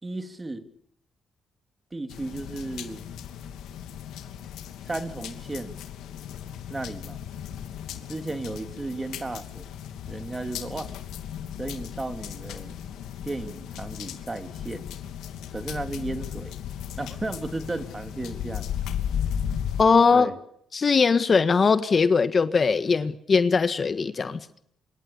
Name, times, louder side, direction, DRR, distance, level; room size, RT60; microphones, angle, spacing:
voice 1, 0.0-0.7 1.9-3.0 4.9-5.8 6.7-7.2 8.1-9.7 10.1-10.9 11.6-12.8 13.2-14.8 15.5-16.5 16.9-18.7 20.1-20.4, right 2 dB, 20° right, 2.9 m, -34 dB
sound 1, 2.1-19.8, left 9 dB, 85° left, 2.7 m, -36 dB
voice 2, 19.8-20.3 20.7-24.4, left 5 dB, 40° left, 1.5 m, -20 dB
27.0 x 23.5 x 7.0 m
cardioid pair, 90°, 0 cm